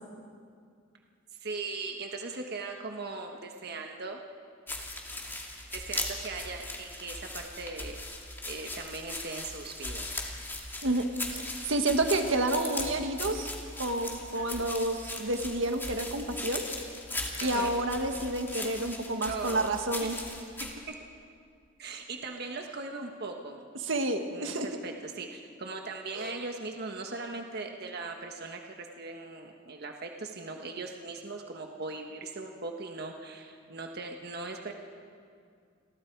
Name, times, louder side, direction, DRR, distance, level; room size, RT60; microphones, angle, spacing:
voice 1, 1.4-4.2 5.7-8.2 8.4-10.0 14.3-14.7 17.4-17.7 19.2-19.7 20.0-20.3 20.9-21.0 21.8-23.6 24.3-34.7, right 3 dB, 55° right, 3 dB, 1.4 m, -39 dB
sound 1, 4.7-20.7, left 2 dB, 10° left, 2.6 m, -39 dB
voice 2, 10.8-13.5 13.8-16.6 17.4-20.2 23.8-24.7 26.1-26.3, right 2 dB, 75° right, 5 dB, 1.6 m, -29 dB
29.0 x 22.5 x 4.7 m, 2.2 s
head